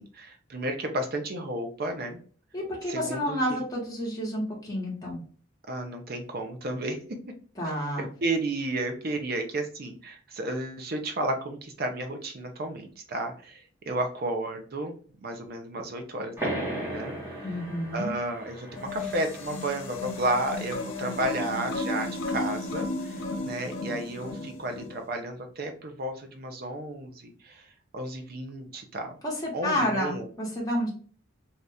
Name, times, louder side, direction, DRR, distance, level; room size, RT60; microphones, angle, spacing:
voice 1, 0.0-2.2 2.9-3.6 5.7-7.0 8.0-14.9 15.2-17.4 17.9-27.7 27.9-29.2 29.5-30.3, right 2 dB, 50° right, 5 dB, 0.6 m, -32 dB
voice 2, 2.5-5.2 7.6-8.1 17.4-18.1 29.2-30.9, equal, 20° left, -4 dB, 1.2 m, -30 dB
sound 1, 16.4-21.6, right 1 dB, 10° right, 1.1 m, -38 dB
sound 2, 18.7-25.0, left 2 dB, 75° left, 0.6 m, -34 dB
2.7 x 2.5 x 3.3 m, 0.44 s
head